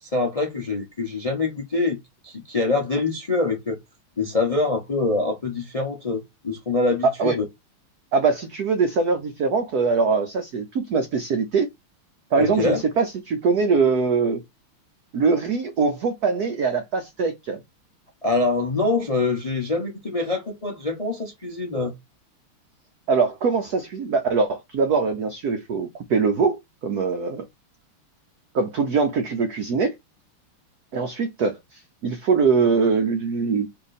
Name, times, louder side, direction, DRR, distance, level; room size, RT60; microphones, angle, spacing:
voice 1, 0.0-2.0 2.2-3.8 4.2-7.4 12.4-12.8 18.2-21.9, left 3 dB, 65° left, 0.3 m, -25 dB
voice 2, 7.0-7.4 8.1-11.7 12.3-14.4 15.1-17.6 23.1-27.5 28.5-29.9 30.9-33.7, right 4 dB, 65° right, 1.0 m, -22 dB
4.4 x 2.9 x 4.1 m
omnidirectional pair, 2.4 m